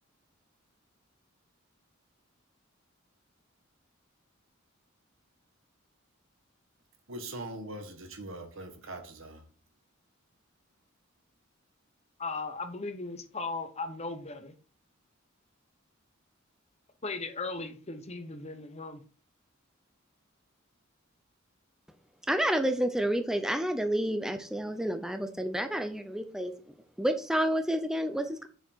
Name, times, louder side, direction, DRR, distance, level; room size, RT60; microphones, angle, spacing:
voice 1, 7.1-9.4, right 2 dB, 75° right, 1.7 m, -41 dB
voice 2, 12.2-14.5 17.0-19.0, left 3 dB, 30° left, 1.0 m, -37 dB
voice 3, 22.3-26.5 27.0-28.5, right 1 dB, 5° right, 0.7 m, -29 dB
7.2 x 6.8 x 4.5 m
head